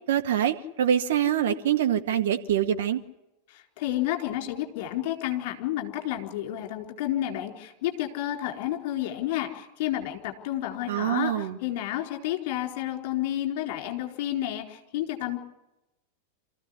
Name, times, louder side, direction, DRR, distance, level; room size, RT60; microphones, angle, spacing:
voice 1, 0.1-3.0 10.9-11.6, right 10 dB, 60° right, 6 dB, 1.9 m, -25 dB
voice 2, 3.5-15.4, left 13 dB, 50° left, 4 dB, 4.2 m, -31 dB
27.0 x 15.0 x 9.8 m, 0.94 s
figure-of-eight pair, 90°, 0 cm